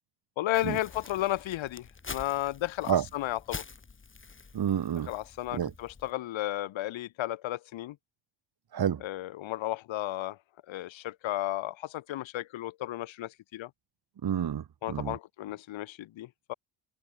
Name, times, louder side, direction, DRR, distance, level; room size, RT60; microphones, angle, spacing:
voice 1, 0.4-3.6 5.1-8.0 9.0-10.4 10.7-13.7 14.8-16.5, left 15 dB, 75° left, 1.2 m, -33 dB
Crumpling crinkling, 0.5-6.1, left 4 dB, 25° left, 3.2 m, -46 dB
voice 2, 4.5-5.1 5.5-5.7 8.7-9.0 14.2-15.2, right 9 dB, 50° right, 2.4 m, -29 dB
cardioid pair, 100°, 47 cm